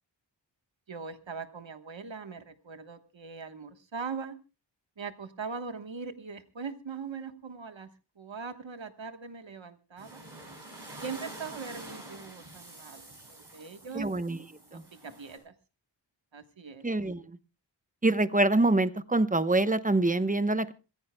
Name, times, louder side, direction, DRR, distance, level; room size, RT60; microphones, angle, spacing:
voice 1, 0.9-4.4 5.0-7.9 8.2-10.2 11.0-14.1 14.7-15.5 16.3-16.8, right 5 dB, 80° right, 9 dB, 1.4 m, -41 dB
sound 1, 10.0-15.4, right 1 dB, 60° right, 7.7 m, -47 dB
voice 2, 13.9-14.4 14.7-14.8 16.8-17.4 18.0-20.7, right 2 dB, 20° right, 12 dB, 1.0 m, -25 dB
26.5 x 15.0 x 2.3 m, 0.31 s
wide cardioid pair, 50°, 45 cm